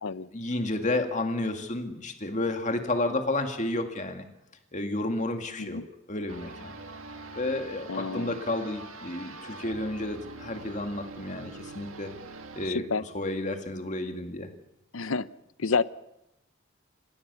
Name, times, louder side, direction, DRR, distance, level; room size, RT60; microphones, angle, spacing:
voice 1, 0.3-4.2 4.7-5.8 6.1-6.7 7.4-12.1 12.6-12.8 13.1-14.5, left 2 dB, 35° left, 5 dB, 2.2 m, -31 dB
sound 1, 6.3-12.7, right 3 dB, 80° right, 2.0 m, -44 dB
voice 2, 7.9-8.4 12.6-13.0 14.9-15.3 15.6-15.8, left 4 dB, 75° left, 16 dB, 0.7 m, -29 dB
28.5 x 16.0 x 7.0 m, 0.87 s
head